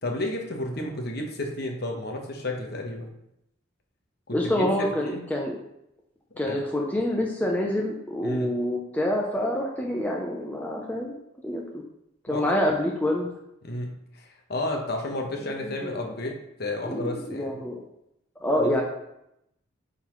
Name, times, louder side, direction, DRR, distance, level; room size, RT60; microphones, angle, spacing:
voice 1, 0.0-3.1 4.3-5.3 6.4-6.6 8.2-8.5 12.3-12.5 13.6-13.9 14.1-16.3 16.6-17.6 18.6-18.8, left 1 dB, 50° left, 2 dB, 1.0 m, -32 dB
voice 2, 4.3-5.6 6.4-11.6 12.3-13.3 15.6-16.1 16.9-17.8 18.4-18.8, left 1 dB, 10° left, -1 dB, 0.6 m, -27 dB
8.3 x 4.0 x 3.1 m, 0.82 s
head